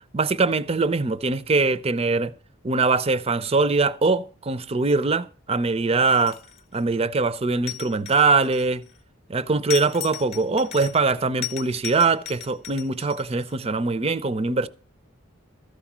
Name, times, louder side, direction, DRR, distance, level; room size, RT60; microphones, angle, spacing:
voice 1, 0.1-2.3 2.6-6.4 6.7-8.8 9.3-14.7, right 3 dB, 30° right, 0.5 m, -22 dB
sound 1, 6.1-6.7 7.7-9.0 9.7-11.1 11.4-13.6, left 13 dB, 30° left, 0.7 m, -36 dB
13.5 x 5.0 x 7.3 m
head